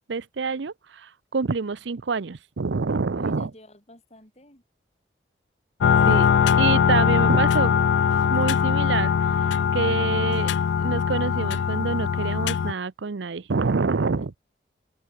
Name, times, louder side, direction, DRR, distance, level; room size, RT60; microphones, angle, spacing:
voice 1, 0.1-3.5 6.0-6.3 6.6-7.8 8.3-9.1 9.7-14.3, right 4 dB, 80° right, 0.6 m, -27 dB
voice 2, 3.1-4.6 14.2-14.4, left 1 dB, 35° left, 5.8 m, -51 dB
sound 1, 5.8-12.7, left 7 dB, 75° left, 0.3 m, -21 dB
open air
head